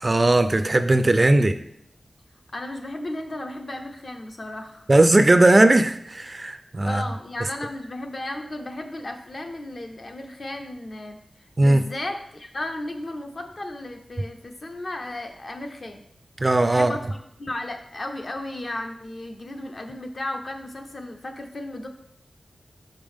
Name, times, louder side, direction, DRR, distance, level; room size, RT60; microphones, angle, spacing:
voice 1, 0.0-1.6 4.9-7.0 11.6-11.8 16.4-16.9, right 2 dB, 30° right, 10 dB, 0.3 m, -18 dB
voice 2, 2.5-4.9 6.8-16.0 16.7-17.1 17.4-21.9, left 1 dB, 50° left, 4 dB, 0.7 m, -34 dB
5.5 x 5.2 x 3.5 m, 0.73 s
wide cardioid pair, 95°, 0 cm